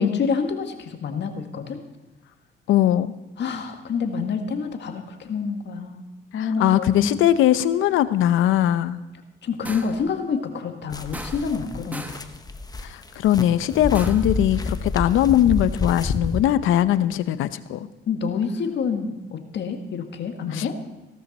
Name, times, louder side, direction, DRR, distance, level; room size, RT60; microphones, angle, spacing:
voice 1, 0.0-1.8 3.4-6.0 6.3-7.1 9.4-12.1 18.1-20.8, left 5 dB, 60° left, 5 dB, 1.8 m, -27 dB
voice 2, 2.7-3.2 6.3-9.0 12.8-17.9 20.5-20.7, left 12 dB, 85° left, 14 dB, 0.7 m, -20 dB
sound 1, 9.6-10.1 11.1-11.6 11.9-12.3 13.9-14.4, right 1 dB, 10° right, 1.0 m, -37 dB
sound 2, 10.9-16.4, left 3 dB, 20° left, 0.9 m, -29 dB
17.0 x 12.5 x 4.2 m, 1.1 s
cardioid pair, 90°, 20 cm